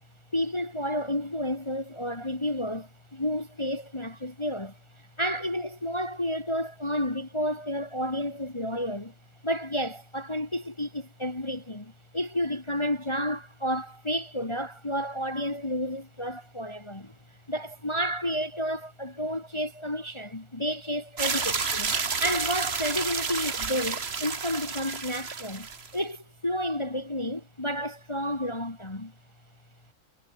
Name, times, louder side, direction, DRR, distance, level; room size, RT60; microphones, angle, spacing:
voice 1, 0.3-9.1 9.4-17.2 17.5-29.1, equal, 15° left, 1.9 m, -31 dB
sound 1, 21.2-25.9, right 5 dB, 35° right, 1.8 m, -30 dB
omnidirectional pair, 2.0 m